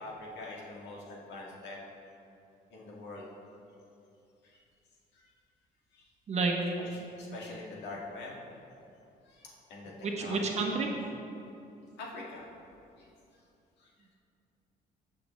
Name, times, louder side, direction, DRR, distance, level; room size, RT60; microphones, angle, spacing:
voice 1, 0.0-1.8 2.7-3.3 4.4-4.6 5.1-5.3 5.9-6.1 6.8-8.4 9.3-10.7 12.0-12.5 13.0-13.1 13.8-13.9, left 2 dB, 85° left, -3 dB, 1.9 m, -44 dB
voice 2, 6.3-6.6 10.0-10.9, right 4 dB, 40° right, 1 dB, 1.1 m, -29 dB
14.5 x 6.8 x 3.2 m, 2.7 s
cardioid pair, 150°, 17 cm